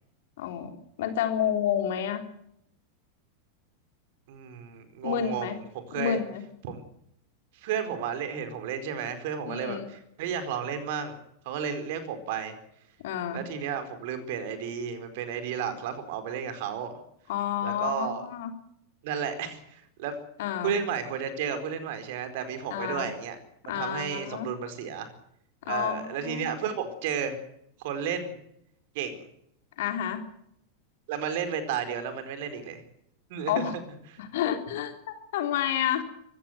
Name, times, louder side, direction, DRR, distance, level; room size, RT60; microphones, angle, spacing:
voice 1, 0.4-2.2 5.0-5.6 5.9-6.4 9.4-9.9 13.0-13.4 17.3-18.5 20.4-20.7 22.7-23.1 23.7-24.5 25.6-26.6 29.8-30.2 33.5-33.7 34.2-36.0, left 9 dB, 55° left, 6 dB, 3.3 m, -30 dB
voice 2, 4.3-6.2 6.6-6.8 7.5-11.2 11.4-12.5 13.3-17.0 17.6-18.3 19.0-20.1 20.6-23.4 23.7-25.1 25.6-27.4 27.8-28.3 28.9-29.2 31.1-32.8 33.3-33.6 34.1-34.2, right 7 dB, 50° right, 9 dB, 4.5 m, -33 dB
24.0 x 16.0 x 8.0 m, 0.75 s
figure-of-eight pair, 90°, 0 cm